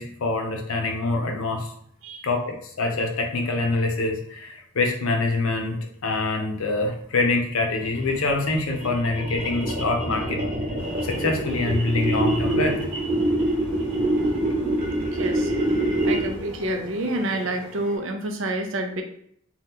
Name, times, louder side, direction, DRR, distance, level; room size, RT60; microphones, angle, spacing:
voice 1, 0.0-1.7 2.2-5.8 6.0-10.4 11.0-12.9, left 3 dB, 80° left, 3 dB, 0.6 m, -25 dB
sound 1, 7.8-16.5, right 1 dB, 40° right, 0.9 m, -25 dB
sound 2, 10.8-18.0, left 1 dB, 5° left, 0.8 m, -42 dB
voice 2, 15.1-15.8 16.0-19.0, right 1 dB, 65° right, 4 dB, 0.5 m, -29 dB
2.8 x 2.2 x 3.5 m, 0.69 s
head